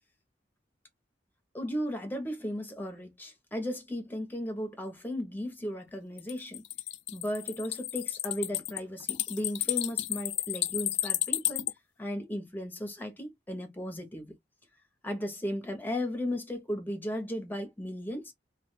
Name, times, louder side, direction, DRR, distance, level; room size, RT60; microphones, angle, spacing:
voice 1, 1.5-6.6 7.1-11.7 12.0-14.3 15.0-18.3, left 1 dB, 10° left, 0.8 m, -35 dB
sound 1, 6.2-11.7, left 15 dB, 75° left, 0.3 m, -32 dB
2.4 x 2.3 x 3.1 m
head